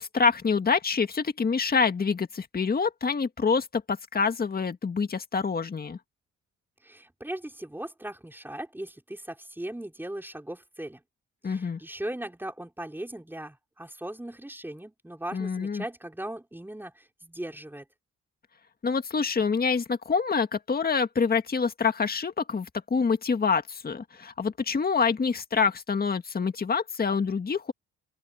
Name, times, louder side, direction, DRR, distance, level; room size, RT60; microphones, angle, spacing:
voice 1, 0.0-6.0 11.4-11.8 15.3-15.8 18.8-27.7, left 5 dB, 30° left, 1.9 m, -26 dB
voice 2, 6.8-11.0 11.4-17.9, right 1 dB, 5° right, 5.4 m, -38 dB
open air
cardioid pair, 90°, 30 cm